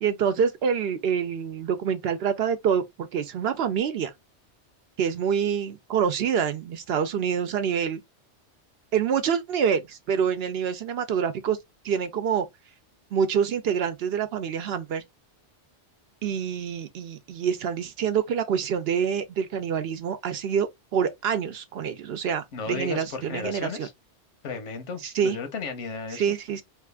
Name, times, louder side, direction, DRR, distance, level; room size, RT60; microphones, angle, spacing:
voice 1, 0.0-4.1 5.0-8.0 8.9-11.6 11.8-12.5 13.1-15.0 16.2-23.9 25.0-25.4 26.1-26.6, right 7 dB, 65° right, 0.7 m, -26 dB
voice 2, 22.5-23.9 24.4-26.2, left 5 dB, 80° left, 1.2 m, -34 dB
3.0 x 2.4 x 3.4 m
omnidirectional pair, 1.2 m